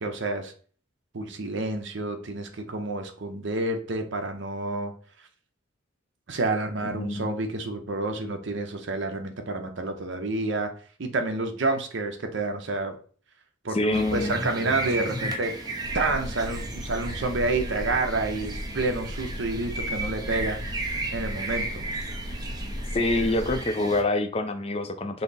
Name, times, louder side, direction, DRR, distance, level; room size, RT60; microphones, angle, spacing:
voice 1, 0.0-0.5 1.1-4.9 6.3-10.7 11.0-13.0 13.6-15.5 15.9-20.6 21.1-21.8, right 2 dB, 60° right, 5 dB, 0.7 m, -29 dB
voice 2, 6.9-7.3 13.7-14.4 15.1-15.2 22.9-25.2, left 2 dB, 30° left, 7 dB, 0.4 m, -26 dB
sound 1, 13.9-24.0, right 2 dB, 20° right, 0.6 m, -35 dB
sound 2, 15.8-23.6, left 1 dB, 75° left, 0.8 m, -36 dB
5.6 x 2.0 x 4.0 m, 0.43 s
head